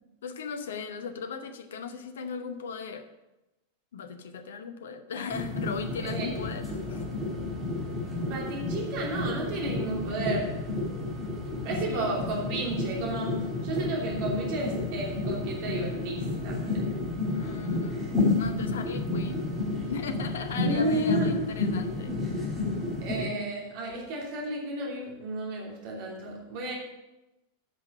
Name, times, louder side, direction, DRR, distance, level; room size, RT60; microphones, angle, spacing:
voice 1, 0.2-3.1 3.9-7.0 11.9-12.2 17.3-19.5 19.9-22.1, left 5 dB, 60° left, 9 dB, 0.9 m, -38 dB
sound 1, 5.3-23.2, left 2 dB, 5° right, 3.8 m, -31 dB
voice 2, 8.2-10.7 11.6-17.0 20.6-21.4 23.0-26.7, right 1 dB, 45° right, -2 dB, 3.0 m, -32 dB
9.7 x 6.0 x 6.6 m, 1.0 s
figure-of-eight pair, 90°, 0 cm